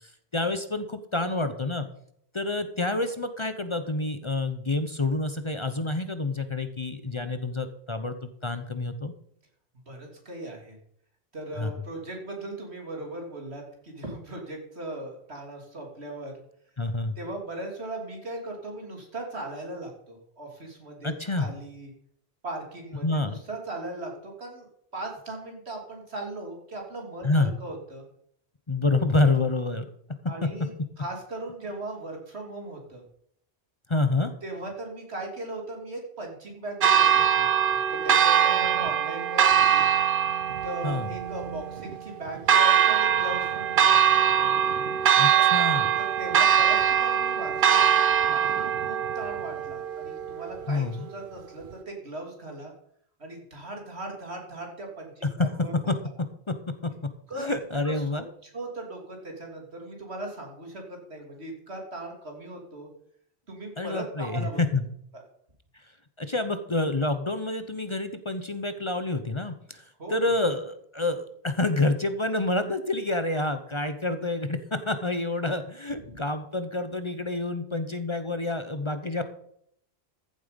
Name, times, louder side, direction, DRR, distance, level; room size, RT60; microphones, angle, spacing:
voice 1, 0.0-1.9 2.3-9.1 11.6-11.7 16.8-17.2 21.0-21.5 23.0-23.3 27.2-27.5 28.7-29.9 30.4-30.5 33.9-34.3 40.8-41.1 45.2-45.9 50.7-51.1 55.5-56.0 56.5-56.6 56.8-56.9 57.4-58.2 63.8-64.9 65.7-65.8 66.2-79.2, left 2 dB, 30° left, 10 dB, 0.8 m, -28 dB
voice 2, 9.9-10.8 11.3-16.3 17.2-21.9 22.4-24.7 24.9-28.0 30.3-30.7 31.0-33.0 34.4-39.9 40.6-44.2 45.3-45.6 46.0-52.7 53.2-55.7 57.3-57.5 57.8-57.9 58.4-62.9 63.5-64.6 65.1-65.2 70.0-70.3 76.1-76.2, right 2 dB, 85° right, 1 dB, 3.3 m, -38 dB
Church bell, 36.8-50.8, right 9 dB, 60° right, 0.8 m, -22 dB
14.5 x 7.7 x 5.2 m, 0.68 s
omnidirectional pair, 1.1 m